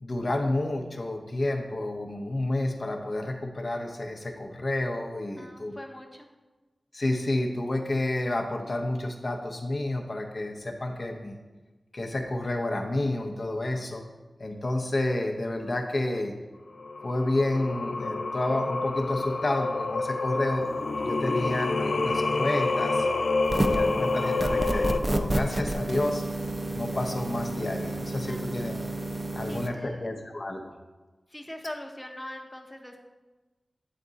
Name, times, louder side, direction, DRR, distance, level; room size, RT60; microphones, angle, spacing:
voice 1, 0.0-5.8 6.9-11.4 11.9-14.0 14.4-16.3 17.0-20.7 21.0-23.1 23.7-26.2 26.7-28.9 29.3-30.7, left 1 dB, 55° left, 2 dB, 0.7 m, -30 dB
voice 2, 5.4-6.3 28.3-28.6 29.5-30.1 31.3-33.0, left 1 dB, 15° left, 2 dB, 0.8 m, -41 dB
Singing, 16.8-25.0, left 3 dB, 80° left, 0.3 m, -28 dB
sound 1, 23.4-23.9 24.4-29.7, right 1 dB, 30° right, 0.6 m, -30 dB
8.4 x 3.6 x 4.0 m, 1.2 s
wide cardioid pair, 55°, 0 cm